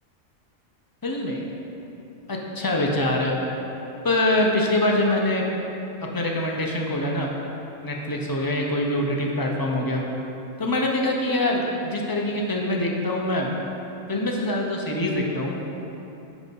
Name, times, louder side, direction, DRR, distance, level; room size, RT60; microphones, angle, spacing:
voice 1, 1.0-1.4 2.3-3.3 4.0-5.5 6.1-7.3 7.8-10.0 10.6-13.5 14.1-15.6, left 1 dB, 20° left, -1 dB, 0.6 m, -24 dB
9.4 x 4.1 x 5.4 m, 2.9 s
omnidirectional pair, 1.4 m